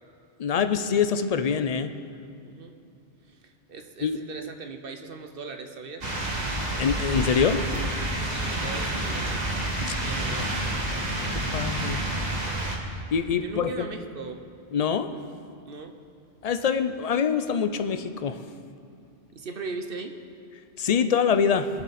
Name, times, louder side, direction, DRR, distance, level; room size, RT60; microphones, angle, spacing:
voice 1, 0.4-1.9 4.0-4.2 6.8-7.8 9.9-10.0 11.3-12.0 13.1-13.9 14.7-15.1 16.4-18.4 20.8-21.7, left 6 dB, 50° left, 9 dB, 0.5 m, -25 dB
voice 2, 2.4-2.7 3.3-6.1 8.2-9.5 10.0-10.8 13.4-14.4 15.6-16.0 19.3-20.2, right 4 dB, 55° right, 6 dB, 1.0 m, -39 dB
sound 1, 6.0-12.8, right 1 dB, 40° right, 1.5 m, -29 dB
21.5 x 7.6 x 4.2 m, 2.5 s
omnidirectional pair, 1.2 m